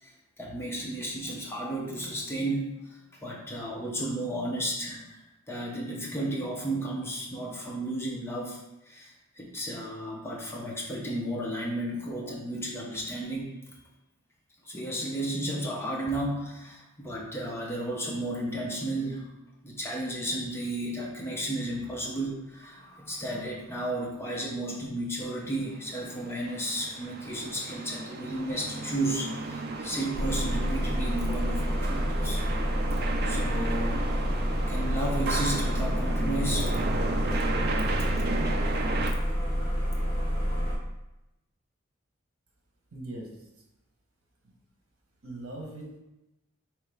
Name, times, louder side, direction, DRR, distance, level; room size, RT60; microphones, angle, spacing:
voice 1, 0.0-5.2 5.5-8.6 8.9-13.6 14.6-19.3 19.6-32.4 33.3-34.1 34.7-36.8 37.9-38.1 38.4-38.6, right 1 dB, 10° left, -2 dB, 0.6 m, -33 dB
sound 1, 25.9-39.1, right 3 dB, 50° right, 0.4 m, -34 dB
sound 2, 30.1-40.8, equal, 40° left, 1.5 m, -28 dB
voice 2, 42.9-43.3 45.2-46.0, right 1 dB, 75° right, -1 dB, 1.1 m, -40 dB
4.8 x 3.1 x 3.4 m, 0.94 s
head